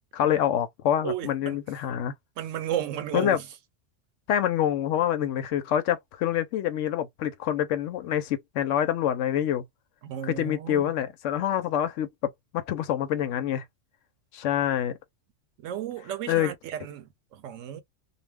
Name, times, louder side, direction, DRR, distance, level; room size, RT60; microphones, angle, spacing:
voice 1, 0.1-2.1 3.1-3.4 4.3-9.6 10.3-13.6 14.3-15.0 16.3-16.5, left 10 dB, 80° left, 0.9 m, -26 dB
voice 2, 1.0-1.6 2.4-3.5 10.0-10.9 15.6-17.8, right 10 dB, 85° right, 1.0 m, -33 dB
2.3 x 2.1 x 3.3 m
omnidirectional pair, 1.3 m